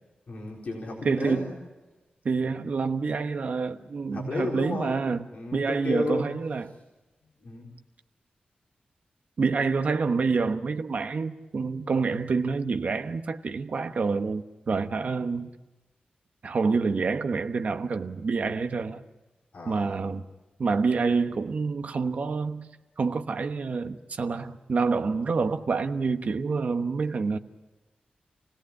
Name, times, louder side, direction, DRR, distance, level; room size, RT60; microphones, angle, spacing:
voice 1, 0.3-1.5 4.1-5.0 5.3-6.3 7.4-7.7 19.5-19.9, left 3 dB, 50° left, 4.4 m, -33 dB
voice 2, 1.0-1.5 2.2-5.3 5.5-6.7 9.4-15.5 16.4-19.0 19.6-20.3 20.6-22.7 23.0-27.4, right 4 dB, 55° right, 1.1 m, -27 dB
28.5 x 18.0 x 8.6 m
wide cardioid pair, 165°, 3 cm